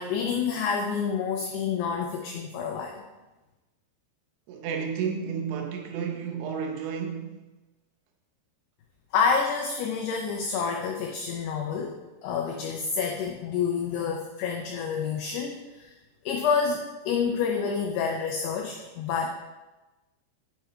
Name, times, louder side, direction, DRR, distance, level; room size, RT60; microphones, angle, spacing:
voice 1, 0.0-3.0 9.1-12.0 12.2-15.9 16.3-19.3, left 6 dB, 90° left, 2.3 m, -28 dB
voice 2, 4.5-7.4, right 6 dB, 85° right, 3.1 m, -32 dB
9.2 x 7.5 x 2.3 m
omnidirectional pair, 5.4 m